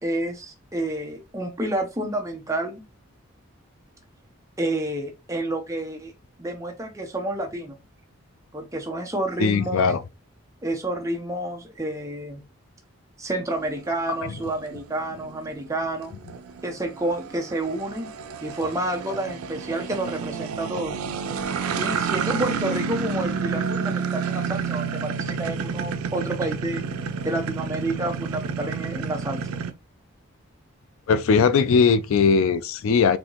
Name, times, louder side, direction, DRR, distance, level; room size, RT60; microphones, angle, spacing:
voice 1, 0.0-2.8 4.6-6.1 6.4-7.8 8.5-10.0 10.6-12.4 13.2-16.1 16.6-18.1 18.4-21.0 21.8-26.8 27.2-29.4, right 1 dB, 15° right, 0.6 m, -29 dB
voice 2, 9.4-10.0 14.2-14.3 31.1-33.2, left 5 dB, 70° left, 0.4 m, -19 dB
sound 1, 13.6-29.7, right 5 dB, 90° right, 0.4 m, -30 dB
4.1 x 2.8 x 3.0 m
head